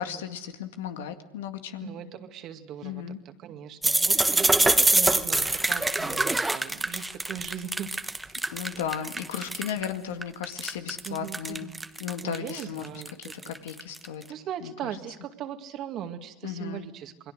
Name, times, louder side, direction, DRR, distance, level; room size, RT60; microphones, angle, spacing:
voice 1, 0.0-1.9 2.8-3.2 8.5-11.7 12.0-12.9 13.2-14.2 14.6-14.9 16.4-16.9, left 9 dB, 85° left, 7 dB, 2.0 m, -35 dB
voice 2, 1.8-7.9 8.7-9.1 11.0-11.7 12.2-13.6 14.3-17.3, right 9 dB, 45° right, 6 dB, 2.1 m, -39 dB
sound 1, 3.8-9.8 10.2-14.1, right 2 dB, 10° right, 1.0 m, -25 dB
28.0 x 22.0 x 6.5 m, 1.1 s
supercardioid pair, 110°, 0 cm